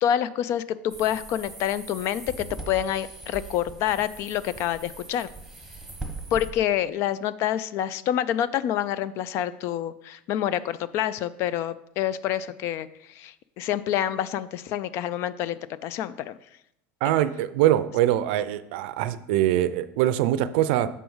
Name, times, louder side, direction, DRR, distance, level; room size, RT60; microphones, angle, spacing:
voice 1, 0.0-5.3 6.3-16.4 17.0-17.1, left 11 dB, 45° left, 16 dB, 0.4 m, -27 dB
sound 1, 0.9-6.5, right 3 dB, 5° right, 1.1 m, -40 dB
voice 2, 17.0-20.9, right 13 dB, 70° right, 14 dB, 0.5 m, -23 dB
7.0 x 4.6 x 5.5 m, 0.80 s
supercardioid pair, 145°, 6 cm